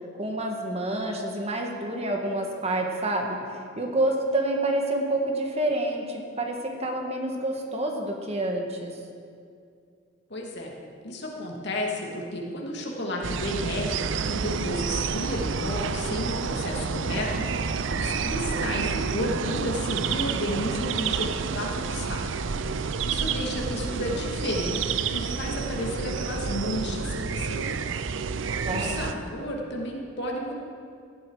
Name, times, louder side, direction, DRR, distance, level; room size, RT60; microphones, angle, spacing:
voice 1, 0.2-3.4 3.8-9.0 28.7-29.0, right 1 dB, 35° right, 2 dB, 1.8 m, -28 dB
voice 2, 10.3-10.7 11.0-17.3 18.0-22.3 22.8-27.8 28.7-30.6, left 1 dB, 60° left, -1 dB, 2.7 m, -32 dB
sound 1, 13.2-29.1, right 5 dB, 70° right, 0.6 m, -29 dB
18.0 x 14.0 x 5.0 m, 2.3 s
head